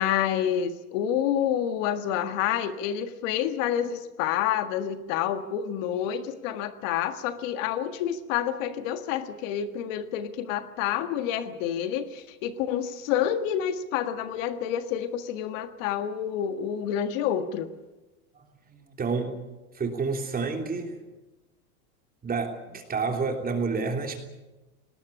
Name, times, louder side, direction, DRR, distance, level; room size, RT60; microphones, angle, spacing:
voice 1, 0.0-17.7, left 10 dB, 60° left, 9 dB, 1.7 m, -28 dB
voice 2, 18.3-19.3 19.7-21.0 22.2-24.2, right 4 dB, 20° right, 4 dB, 3.2 m, -29 dB
20.0 x 18.0 x 10.0 m, 1.1 s
supercardioid pair, 130°, 43 cm